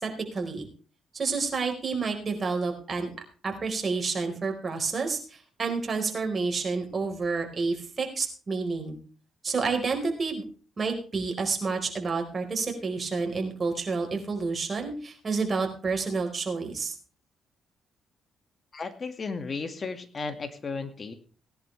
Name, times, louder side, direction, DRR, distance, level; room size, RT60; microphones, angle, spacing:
voice 1, 0.0-0.7 1.1-3.1 3.4-9.0 9.4-10.4 10.8-16.9, right 4 dB, 35° right, 3 dB, 4.5 m, -29 dB
voice 2, 18.7-21.1, left 4 dB, 35° left, 9 dB, 2.0 m, -34 dB
18.5 x 11.0 x 3.4 m, 0.38 s
cardioid pair, 90°, 0 cm